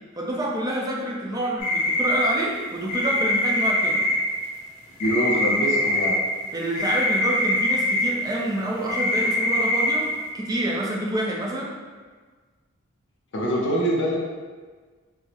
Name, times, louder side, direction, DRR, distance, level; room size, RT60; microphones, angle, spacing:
voice 1, 0.2-4.0 6.5-10.1 10.3-11.7, right 1 dB, 20° right, -3 dB, 0.5 m, -27 dB
sound 1, 1.6-2.3 2.9-4.2 5.0-6.1 6.7-8.0 8.9-9.9, left 1 dB, 35° left, 0.9 m, -23 dB
voice 2, 5.0-6.2 13.3-14.2, right 1 dB, 65° left, -3 dB, 0.6 m, -24 dB
4.5 x 2.0 x 2.8 m, 1.4 s
head